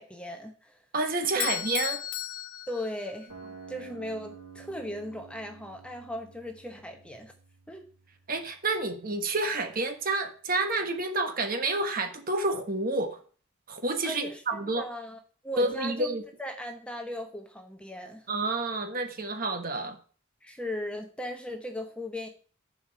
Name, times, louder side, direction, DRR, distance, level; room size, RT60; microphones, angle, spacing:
voice 1, 0.0-0.8 1.3-1.5 2.7-3.3 3.7-7.3 7.7-7.8 14.0-18.3 20.4-22.3, left 1 dB, 5° left, 4 dB, 0.9 m, -38 dB
voice 2, 0.9-2.0 8.3-13.2 13.7-14.8 15.6-16.2 18.3-20.0, right 2 dB, 40° right, 6 dB, 1.3 m, -29 dB
Bell / Doorbell, 1.4-3.5, left 13 dB, 75° left, 0.5 m, -34 dB
sound 1, 3.3-9.3, right 6 dB, 85° right, 2.7 m, -50 dB
11.0 x 5.0 x 6.7 m, 0.41 s
head